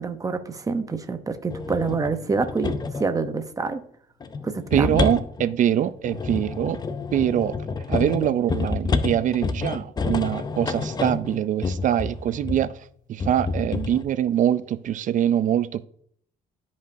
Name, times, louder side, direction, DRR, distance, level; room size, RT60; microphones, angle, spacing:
voice 1, 0.0-3.8 4.4-5.0, right 4 dB, 20° right, 0.8 m, -27 dB
sound 1, 1.5-3.1 4.2-12.7 13.2-14.0, left 4 dB, 25° left, 0.6 m, -29 dB
voice 2, 4.7-6.8 7.1-7.5 7.9-12.7 13.1-15.8, right 10 dB, 50° right, 0.4 m, -23 dB
12.0 x 5.2 x 2.7 m
cardioid pair, 110°, 17 cm